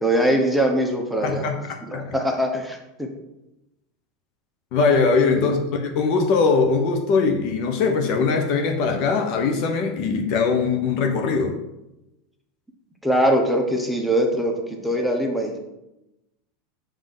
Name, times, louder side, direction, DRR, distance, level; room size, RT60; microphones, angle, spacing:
voice 1, 0.0-1.4 1.8-3.1 5.4-5.5 13.0-15.6, right 1 dB, ahead, 1 dB, 1.1 m, -22 dB
voice 2, 1.2-1.6 1.9-2.1 4.7-11.6, left 4 dB, 60° left, 4 dB, 0.9 m, -21 dB
5.2 x 3.6 x 5.4 m, 0.94 s
hypercardioid pair, 95°, 0 cm